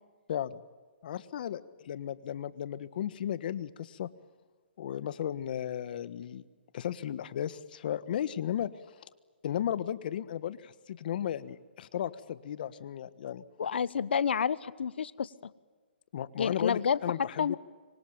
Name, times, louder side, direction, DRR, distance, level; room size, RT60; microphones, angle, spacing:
voice 1, 0.3-0.6 1.0-4.1 4.8-6.4 6.7-8.7 9.4-13.4 16.1-17.6, left 10 dB, 55° left, 16 dB, 1.5 m, -35 dB
voice 2, 13.6-15.5 16.4-17.6, left 7 dB, 75° left, 19 dB, 1.2 m, -30 dB
26.0 x 25.0 x 8.9 m, 1.5 s
hypercardioid pair, 150°, 6 cm